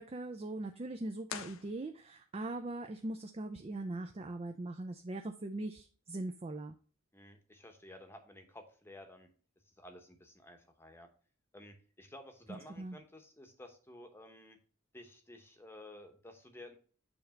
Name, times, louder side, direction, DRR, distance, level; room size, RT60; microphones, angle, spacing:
voice 1, 0.0-6.7 12.5-13.0, right 2 dB, 30° right, 5 dB, 0.4 m, -41 dB
sound 1, 1.2-2.4, left 8 dB, 75° left, 0.5 m, -46 dB
voice 2, 7.1-9.3 9.6-11.1 11.5-14.6 14.9-16.8, left 1 dB, 10° left, 5 dB, 0.9 m, -53 dB
7.0 x 3.3 x 5.2 m, 0.40 s
head